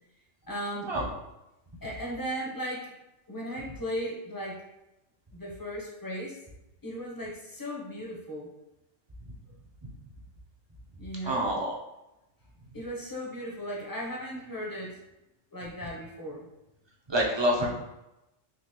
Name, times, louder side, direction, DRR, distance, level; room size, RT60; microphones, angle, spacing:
voice 1, 0.5-0.9 1.8-2.9 3.3-4.7 5.3-6.4 6.8-8.5 11.0-11.5 12.7-15.0 15.5-16.5, equal, 25° left, -2 dB, 0.5 m, -36 dB
voice 2, 11.2-11.8 17.1-17.8, equal, 35° right, -2 dB, 0.4 m, -27 dB
3.8 x 2.9 x 2.9 m, 0.93 s
omnidirectional pair, 1.3 m